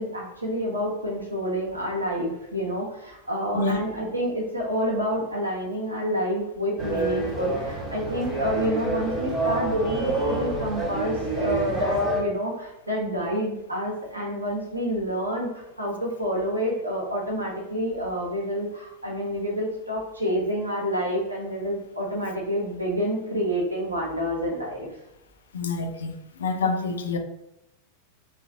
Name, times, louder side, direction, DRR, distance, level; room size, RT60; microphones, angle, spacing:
voice 1, 0.0-24.9, equal, 80° right, 0.9 m, -28 dB
sound 1, 6.8-12.2, right 1 dB, 20° right, 1.2 m, -27 dB
voice 2, 25.5-26.1 26.4-27.2, left 3 dB, 65° left, 0.4 m, -26 dB
4.0 x 2.6 x 2.7 m
figure-of-eight pair, 90°, 0 cm